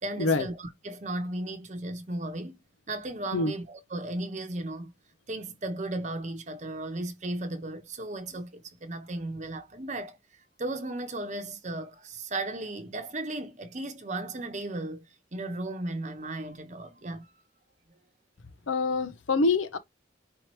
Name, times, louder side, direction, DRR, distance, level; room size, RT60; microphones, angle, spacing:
voice 1, 0.0-2.6 2.9-4.9 5.3-10.2 10.6-15.1 15.3-17.3, right 2 dB, 40° right, 0.9 m, -35 dB
voice 2, 18.7-19.8, left 3 dB, 90° left, 0.7 m, -25 dB
4.9 x 2.9 x 3.1 m
head